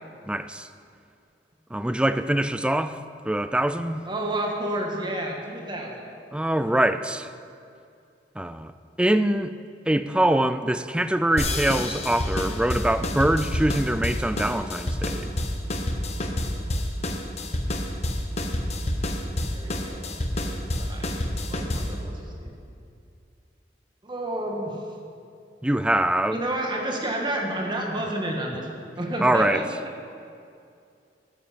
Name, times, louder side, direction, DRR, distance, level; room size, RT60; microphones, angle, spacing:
voice 1, 0.3-0.7 1.7-3.0 3.3-4.0 6.3-7.3 8.4-8.7 9.0-9.5 9.9-15.3 25.6-26.4 29.2-29.6, right 1 dB, 5° right, 11 dB, 0.4 m, -23 dB
voice 2, 4.0-6.1 19.3-20.1 20.4-21.2 21.5-22.5 24.0-24.9 26.3-29.6, right 1 dB, 25° right, 0 dB, 1.7 m, -30 dB
sound 1, 11.4-22.0, left 1 dB, 40° left, 1.1 m, -28 dB
13.5 x 9.8 x 5.2 m, 2.5 s
head